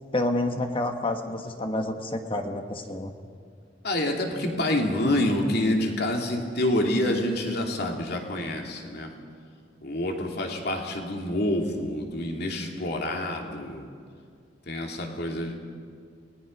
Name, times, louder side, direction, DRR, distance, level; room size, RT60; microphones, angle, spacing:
voice 1, 0.1-3.1, left 2 dB, 30° left, 5 dB, 1.2 m, -29 dB
voice 2, 3.8-9.1 9.8-13.8 14.7-15.5, left 1 dB, 55° left, 1 dB, 2.8 m, -27 dB
29.5 x 19.0 x 5.4 m, 2.2 s
head